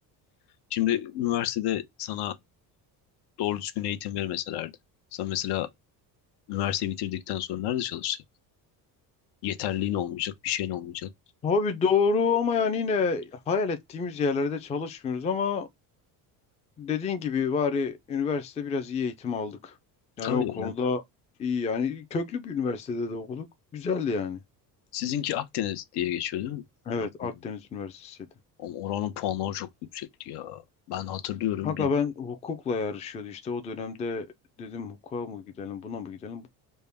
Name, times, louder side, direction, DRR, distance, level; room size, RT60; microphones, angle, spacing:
voice 1, 0.7-2.3 3.4-4.7 5.1-5.7 6.5-8.2 9.4-11.1 20.2-20.7 24.9-26.6 27.2-27.3 28.6-30.6 30.9-31.9, left 12 dB, 75° left, 0.8 m, -30 dB
voice 2, 11.4-15.7 16.8-19.8 20.2-21.0 21.4-23.5 23.7-24.4 26.9-28.2 31.6-34.3 34.6-36.5, left 5 dB, 20° left, 0.3 m, -29 dB
5.3 x 2.2 x 3.4 m
cardioid pair, 150°, 40 cm